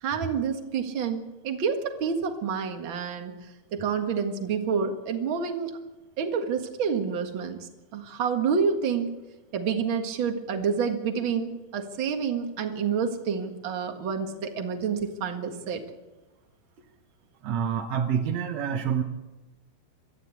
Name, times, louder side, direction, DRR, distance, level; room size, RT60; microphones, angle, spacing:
voice 1, 0.0-3.3 3.7-5.7 6.2-9.1 9.5-15.8, right 6 dB, 45° right, 5 dB, 1.7 m, -28 dB
voice 2, 17.4-19.0, right 8 dB, 65° right, 3 dB, 1.8 m, -27 dB
23.0 x 14.5 x 8.4 m, 1.1 s
omnidirectional pair, 4.4 m